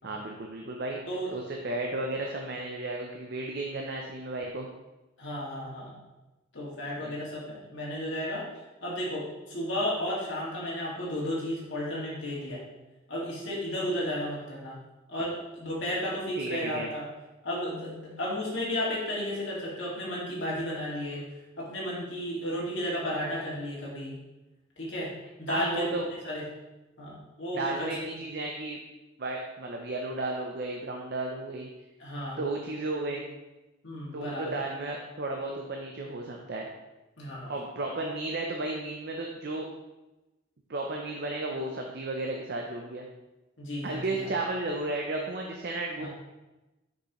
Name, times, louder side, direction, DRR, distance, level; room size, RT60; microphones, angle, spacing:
voice 1, 0.0-1.0 1.3-4.7 7.0-7.2 16.4-16.9 25.5-26.1 27.5-28.8 29.2-31.7 32.4-33.3 34.1-36.7 37.5-39.7 40.7-43.1 43.8-46.1, right 2 dB, 50° right, 1 dB, 0.6 m, -33 dB
voice 2, 5.2-5.9 6.5-8.4 8.8-12.6 13.1-14.8 15.1-17.0 17.4-21.2 21.6-24.1 24.8-25.1 25.4-26.4 27.0-27.9 32.0-32.4 33.8-34.5 37.2-37.5 43.6-44.3 46.0-46.1, equal, 65° left, -6 dB, 2.1 m, -33 dB
6.3 x 5.4 x 3.1 m, 1.0 s
head